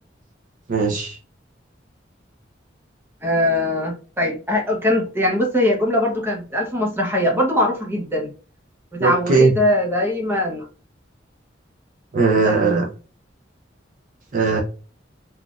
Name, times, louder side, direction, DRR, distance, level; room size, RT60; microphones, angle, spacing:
voice 1, 0.7-1.2 9.0-9.6 12.1-12.9 14.3-14.6, right 4 dB, 45° right, 1 dB, 0.5 m, -18 dB
voice 2, 3.2-8.3 9.0-10.7 12.4-12.9, left 1 dB, 10° right, 0 dB, 0.8 m, -21 dB
3.9 x 2.4 x 2.3 m, 0.37 s
head